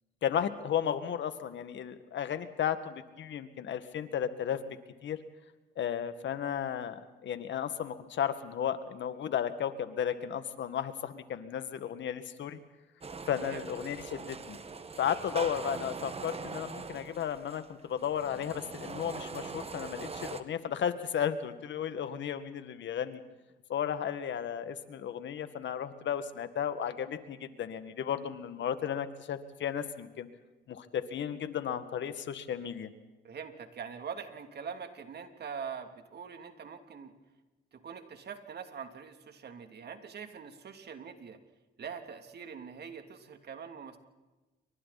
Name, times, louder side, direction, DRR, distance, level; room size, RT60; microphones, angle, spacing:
voice 1, 0.2-5.2 5.8-12.6 13.3-14.6 15.0-23.2 23.7-30.3 30.7-32.9, left 9 dB, 65° left, 10 dB, 2.0 m, -34 dB
sound 1, 13.0-20.4, right 4 dB, 30° right, 1.6 m, -42 dB
voice 2, 33.2-37.1 37.7-41.4 41.8-44.0, right 6 dB, 55° right, 6 dB, 3.0 m, -43 dB
29.0 x 24.5 x 4.3 m, 1.1 s
cardioid pair, 90°, 20 cm